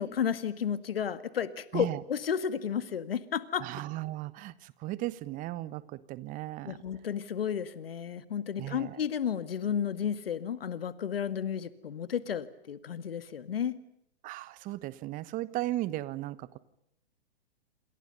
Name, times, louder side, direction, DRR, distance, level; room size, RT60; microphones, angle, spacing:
voice 1, 0.0-3.7 6.7-13.8, left 8 dB, 65° left, 14 dB, 2.1 m, -32 dB
voice 2, 3.6-6.8 8.6-9.0 14.2-16.6, right 16 dB, 25° right, 18 dB, 1.3 m, -36 dB
28.5 x 27.0 x 5.4 m, 0.76 s
figure-of-eight pair, 115°, 31 cm